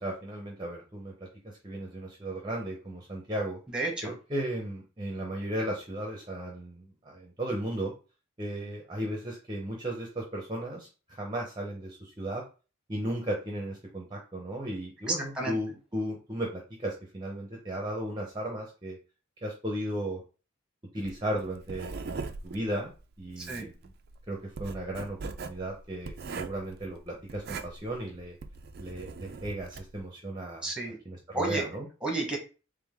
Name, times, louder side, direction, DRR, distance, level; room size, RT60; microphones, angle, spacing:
voice 1, 0.0-3.6 4.0-7.9 8.4-12.4 12.9-19.0 19.4-20.2 20.9-22.9 23.2-23.9 24.3-28.4 28.8-30.7 31.0-31.9, right 1 dB, 20° right, 0 dB, 0.7 m, -35 dB
voice 2, 3.7-4.1 15.1-15.6 23.4-23.7 30.6-31.0 31.3-31.6 32.0-32.4, right 2 dB, 5° right, 1 dB, 1.1 m, -31 dB
Writing, 21.0-30.0, right 4 dB, 50° right, 0.4 m, -41 dB
3.7 x 3.4 x 3.5 m, 0.34 s
head